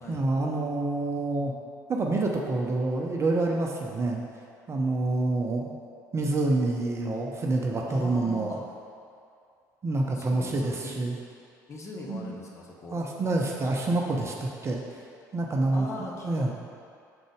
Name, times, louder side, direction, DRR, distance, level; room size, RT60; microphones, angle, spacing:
voice 1, 0.1-1.5 1.9-4.2 4.7-5.7 6.1-8.5 9.8-11.2 12.1-12.3 12.9-15.0 15.3-16.5, right 2 dB, 30° right, 0 dB, 0.7 m, -27 dB
voice 2, 7.9-8.6 10.1-10.9 11.7-13.0 15.7-16.5, left 2 dB, 30° left, -3 dB, 1.2 m, -40 dB
6.8 x 3.9 x 4.9 m, 2.4 s
figure-of-eight pair, 60°, 10 cm